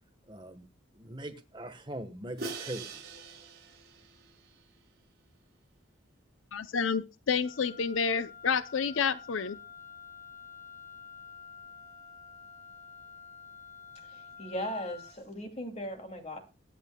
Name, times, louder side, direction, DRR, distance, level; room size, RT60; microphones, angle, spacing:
voice 1, 0.3-0.7 1.0-3.0, right 1 dB, 20° right, 1.2 m, -41 dB
Crash cymbal, 2.4-4.6, right 4 dB, 50° right, 6.2 m, -43 dB
voice 2, 6.5-9.6, left 6 dB, 75° left, 0.6 m, -29 dB
Wind instrument woodwind instrument, 7.4-15.2, left 6 dB, 15° left, 1.0 m, -49 dB
voice 3, 14.4-16.4, equal, 30° left, 2.5 m, -37 dB
22.0 x 9.3 x 2.3 m
head